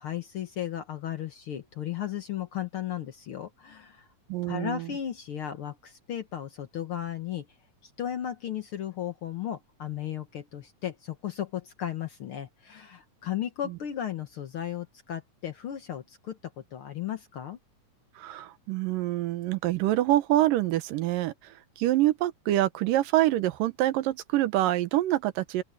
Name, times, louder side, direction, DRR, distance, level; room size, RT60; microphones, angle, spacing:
voice 1, 0.0-4.1 4.4-7.5 7.8-17.6, left 10 dB, 65° left, 1.4 m, -35 dB
voice 2, 4.3-4.9 18.2-25.6, right 14 dB, 90° right, 2.7 m, -26 dB
open air
omnidirectional pair, 3.8 m